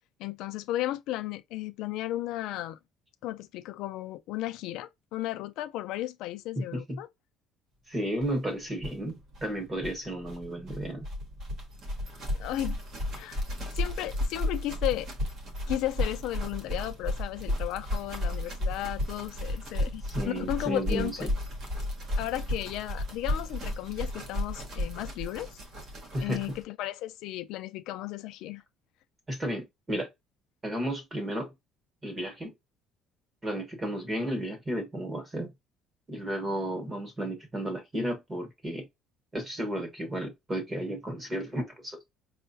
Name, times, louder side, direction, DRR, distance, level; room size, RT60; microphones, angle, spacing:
voice 1, 0.2-2.8 3.2-7.1 12.3-12.8 13.1-13.4 13.7-15.1 15.7-21.3 22.2-25.6 26.2-28.6, left 15 dB, 65° left, 0.4 m, -34 dB
voice 2, 6.6-7.0 7.9-11.0 20.1-21.3 26.1-26.4 29.3-30.1 30.6-31.5 32.0-32.5 33.4-35.5 36.1-38.9 39.3-42.1, right 1 dB, 15° right, 1.0 m, -33 dB
sound 1, 8.2-8.3 8.5-8.6 8.8-26.6, left 1 dB, 40° right, 0.9 m, -33 dB
4.7 x 2.1 x 2.6 m
cardioid pair, 180°, 0 cm